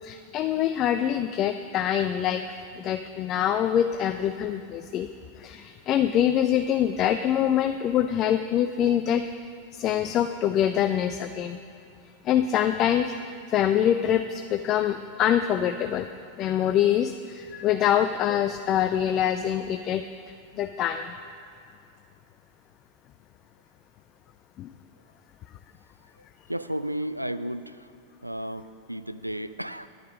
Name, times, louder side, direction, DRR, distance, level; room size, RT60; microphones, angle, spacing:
voice 1, 0.0-5.1 5.4-9.2 9.7-11.6 12.2-13.1 13.5-16.1 16.4-20.0 20.5-21.1 24.6-24.7, left 10 dB, 35° left, 9 dB, 0.3 m, -25 dB
voice 2, 26.2-27.9 28.2-29.9, right 1 dB, 90° right, 12 dB, 0.3 m, -33 dB
10.5 x 9.1 x 5.2 m, 2.5 s
figure-of-eight pair, 90°, 0 cm